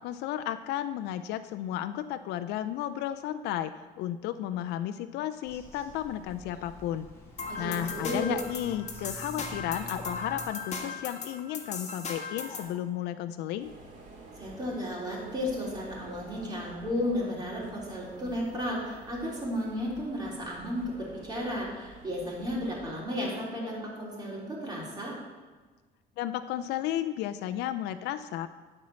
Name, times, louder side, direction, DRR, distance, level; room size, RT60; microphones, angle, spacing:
voice 1, 0.0-7.1 7.6-13.7 26.2-28.5, left 11 dB, 80° left, 10 dB, 0.4 m, -33 dB
Bird vocalization bird call bird song, 5.4-10.5, equal, 15° left, 2.8 m, -48 dB
sound 1, 7.4-12.7, left 4 dB, 40° left, 1.4 m, -38 dB
voice 2, 7.5-8.4 14.4-25.1, left 1 dB, 25° right, -4 dB, 3.2 m, -33 dB
sound 2, 13.6-23.0, right 3 dB, 45° right, 2.4 m, -50 dB
9.7 x 4.5 x 7.4 m, 1.3 s
cardioid pair, 110°, 17 cm